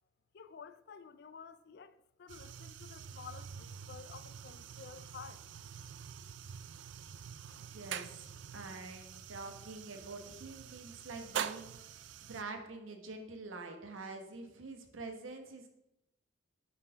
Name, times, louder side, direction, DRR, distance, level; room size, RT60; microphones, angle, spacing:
voice 1, 0.3-5.4, left 6 dB, 50° left, 0.4 m, -52 dB
sound 1, 2.3-12.4, right 8 dB, 60° right, 0.3 m, -45 dB
voice 2, 7.6-11.7 12.2-15.7, right 3 dB, 75° right, 1.1 m, -46 dB
7.3 x 4.3 x 5.6 m
head